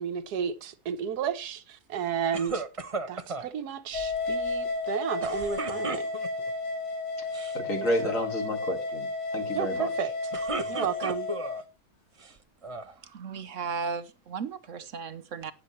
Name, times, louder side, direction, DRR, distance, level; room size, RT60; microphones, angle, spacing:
voice 1, 0.0-2.6 3.1-6.1 9.5-10.1 10.7-11.3, right 8 dB, 80° right, 1.5 m, -32 dB
sound 1, 2.3-3.5 5.2-6.5 7.2-7.6 7.9-8.3 10.1-11.6 12.2-12.9, right 3 dB, 35° right, 0.6 m, -35 dB
sound 2, 3.9-11.6, left 3 dB, 70° left, 2.7 m, -32 dB
voice 2, 7.5-9.1 9.3-9.9, left 1 dB, 55° left, 2.5 m, -30 dB
voice 3, 13.0-15.5, right 5 dB, 60° right, 1.1 m, -35 dB
13.5 x 9.4 x 3.1 m
omnidirectional pair, 1.7 m